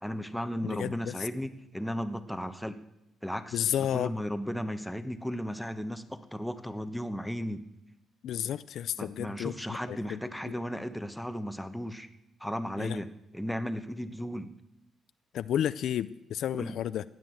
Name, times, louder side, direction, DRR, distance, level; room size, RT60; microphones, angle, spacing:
voice 1, 0.0-2.8 3.2-7.6 9.0-12.1 12.4-14.5 16.5-16.8, equal, ahead, 8 dB, 1.1 m, -35 dB
voice 2, 0.6-1.1 3.5-4.1 8.2-10.5 12.8-13.0 15.3-17.0, left 10 dB, 70° left, 14 dB, 0.5 m, -32 dB
16.5 x 9.3 x 7.8 m, 0.86 s
cardioid pair, 90°, 0 cm